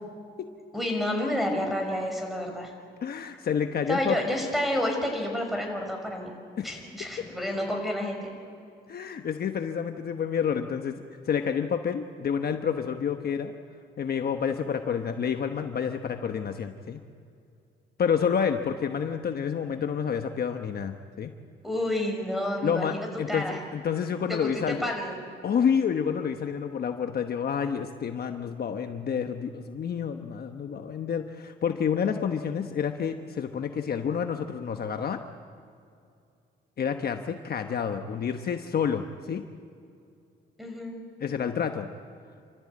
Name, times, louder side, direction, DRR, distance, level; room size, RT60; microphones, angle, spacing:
voice 1, 0.7-2.7 3.9-6.3 6.6-8.3 21.6-23.6 24.3-25.1 40.6-40.9, left 1 dB, ahead, 3 dB, 5.6 m, -30 dB
voice 2, 3.0-4.2 6.6-6.7 8.9-13.5 14.0-17.0 18.0-21.3 22.6-24.8 25.4-35.2 36.8-39.4 41.2-41.9, left 7 dB, 50° left, 6 dB, 1.1 m, -29 dB
28.5 x 14.0 x 8.6 m, 2.4 s
cardioid pair, 90°, 20 cm